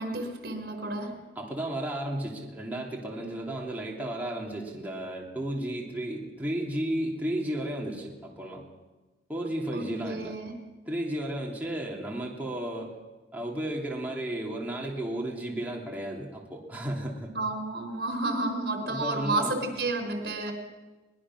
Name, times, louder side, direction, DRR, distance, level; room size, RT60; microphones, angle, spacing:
voice 1, 0.0-1.2 9.7-10.5 17.3-20.5, right 2 dB, 70° right, 6 dB, 3.8 m, -31 dB
voice 2, 1.3-8.6 9.3-10.4 10.9-12.9 13.3-17.4 18.9-19.6, right 1 dB, 10° right, -2 dB, 3.1 m, -33 dB
22.5 x 20.5 x 6.1 m, 1.2 s
head